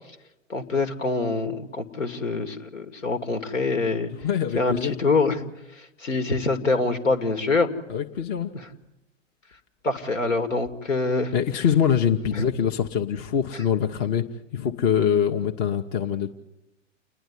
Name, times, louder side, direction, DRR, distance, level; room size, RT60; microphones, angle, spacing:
voice 1, 0.5-4.1 4.6-5.4 6.0-7.7 9.8-11.3, left 3 dB, 75° left, 8 dB, 2.3 m, -25 dB
voice 2, 4.2-4.9 7.9-8.5 11.3-14.3 14.5-16.3, left 8 dB, 30° left, 5 dB, 1.0 m, -24 dB
28.5 x 10.5 x 9.8 m, 0.96 s
figure-of-eight pair, 115°, 38 cm